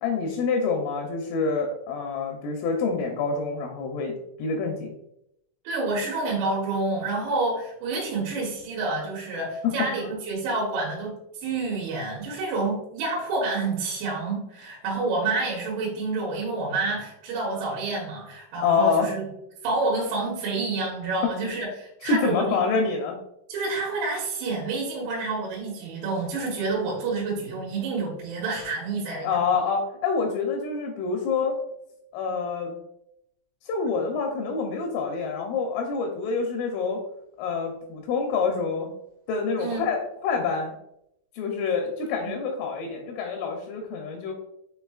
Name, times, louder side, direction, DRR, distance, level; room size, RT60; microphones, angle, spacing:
voice 1, 0.0-5.0 9.6-9.7 10.0-10.1 18.6-19.1 21.2-21.3 22.0-23.2 29.2-31.6 32.1-32.8 33.6-37.0 37.4-38.9 39.3-40.7 41.4-44.3, left 5 dB, 80° left, 2 dB, 2.9 m, -27 dB
voice 2, 5.7-19.3 19.6-22.6 23.5-29.3 39.6-39.8 42.2-42.4, right 3 dB, 85° right, -3 dB, 3.9 m, -28 dB
7.9 x 2.8 x 2.3 m, 0.79 s
omnidirectional pair, 6.0 m